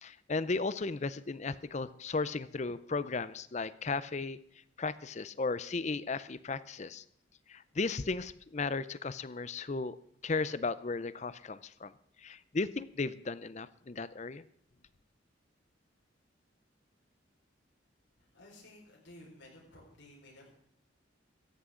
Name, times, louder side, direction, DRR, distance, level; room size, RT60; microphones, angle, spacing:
voice 1, 0.0-4.4 4.8-7.0 7.5-10.0 10.2-11.9 12.2-14.4, left 3 dB, 35° left, 16 dB, 0.5 m, -35 dB
voice 2, 18.2-20.6, left 1 dB, 75° left, -3 dB, 4.9 m, -55 dB
16.0 x 14.0 x 3.8 m, 0.68 s
head